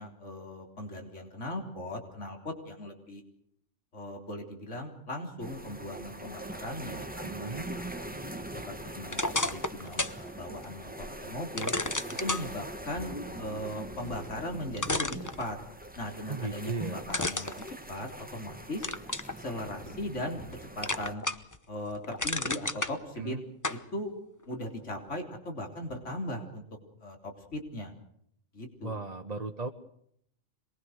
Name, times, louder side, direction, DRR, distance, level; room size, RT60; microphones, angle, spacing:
voice 1, 0.0-3.2 3.9-7.5 7.8-8.2 8.5-11.7 12.2-13.1 13.4-15.6 16.0-18.9 19.3-20.4 20.8-21.2 21.7-23.4 23.9-24.1 24.5-26.6 27.0-27.9 28.5-29.0, left 1 dB, 70° left, 3 dB, 4.1 m, -38 dB
sound 1, 5.4-21.1, right 1 dB, 5° right, 1.4 m, -42 dB
voice 2, 7.2-7.7 16.3-17.0 23.2-23.4 28.8-29.7, right 3 dB, 35° right, 4 dB, 1.2 m, -36 dB
sound 2, 9.1-10.2 10.6-10.7 11.6-12.4 14.2-14.3 14.8-15.9 17.1-18.4 18.8-19.3 19.9-20.5 20.8-21.6 21.9-22.9 23.6-23.8, left 2 dB, 15° left, 0.9 m, -32 dB
26.5 x 21.5 x 6.5 m, 0.71 s
omnidirectional pair, 1.3 m